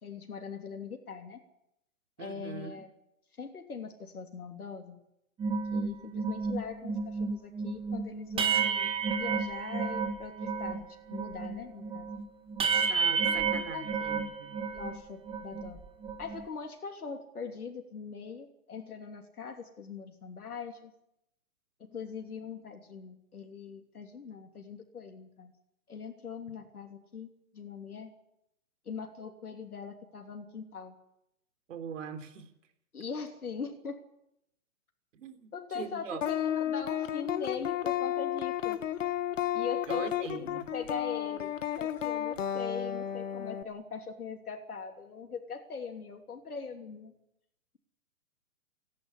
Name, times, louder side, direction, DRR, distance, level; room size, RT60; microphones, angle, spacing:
voice 1, 0.0-1.4 2.2-2.9 3.4-5.0 5.7-10.8 11.1-12.1 13.2-13.9 14.7-15.8 16.2-20.9 21.8-25.5 25.9-27.3 27.5-28.1 28.8-30.9 32.9-34.0 35.5-38.8 39.5-41.5 41.8-47.1, left 5 dB, 85° left, 3 dB, 3.1 m, -41 dB
voice 2, 2.2-2.8 12.9-14.6 31.7-32.5 35.1-35.5 35.7-36.2 39.9-40.7, right 7 dB, 60° right, 8 dB, 3.5 m, -41 dB
sound 1, 5.4-10.8 11.1-15.0 15.3-16.4, right 5 dB, 10° right, 1.7 m, -31 dB
sound 2, 36.2-43.6, left 11 dB, 60° left, 1.7 m, -32 dB
28.0 x 11.0 x 9.8 m, 0.83 s
hypercardioid pair, 135°, 43 cm